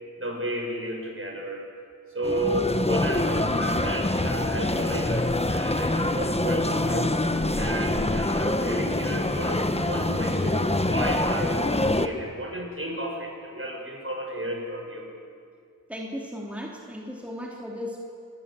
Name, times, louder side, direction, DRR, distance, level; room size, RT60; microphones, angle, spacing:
voice 1, 0.2-1.6 2.1-7.1 7.5-15.1, right 1 dB, 40° right, 1 dB, 6.7 m, -32 dB
sound 1, 2.2-12.1, left 1 dB, 20° left, 1.3 m, -25 dB
voice 2, 15.9-18.0, left 1 dB, 5° right, -2 dB, 3.4 m, -36 dB
28.5 x 22.0 x 7.8 m, 2.3 s
wide cardioid pair, 55°, 33 cm